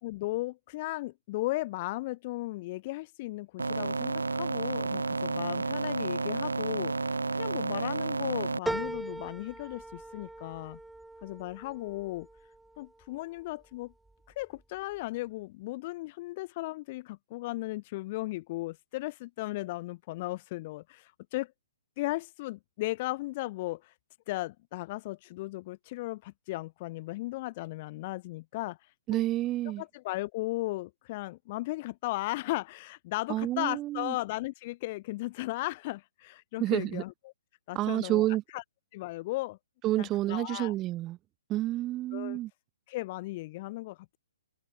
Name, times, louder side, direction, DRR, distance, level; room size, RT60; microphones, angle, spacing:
voice 1, 0.0-10.8 11.2-12.3 12.8-13.9 14.4-21.5 22.0-23.9 24.3-28.8 29.1-29.2 29.6-37.1 37.7-38.3 38.5-38.6 38.9-39.6 40.0-40.7 42.1-42.4 42.9-44.2, left 19 dB, 35° left, 2.7 m, -36 dB
sound 1, 3.6-8.6, right 3 dB, 75° right, 0.9 m, -31 dB
sound 2, 8.7-13.4 13.9-14.6 15.0-15.1, right 2 dB, 5° right, 1.6 m, -40 dB
voice 2, 29.1-29.8 33.3-34.1 36.6-37.0 37.7-38.4 39.8-41.2 41.5-42.5, right 15 dB, 20° right, 1.2 m, -29 dB
figure-of-eight pair, 125°, 0 cm